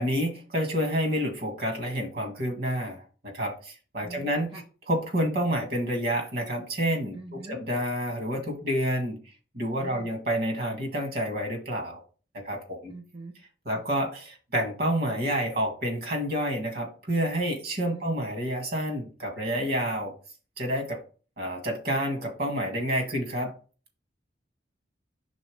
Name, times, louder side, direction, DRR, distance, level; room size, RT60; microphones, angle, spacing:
voice 1, 0.0-4.6 4.9-9.2 9.5-12.0 12.3-12.9 13.6-20.1 20.6-21.0 21.4-23.5, equal, 55° right, 4 dB, 1.7 m, -29 dB
voice 2, 4.0-4.6 7.1-7.6 9.8-10.1 12.9-13.3 13.7-13.8 17.8-18.1, right 2 dB, 25° right, 3 dB, 0.7 m, -43 dB
5.3 x 3.6 x 4.8 m, 0.37 s
head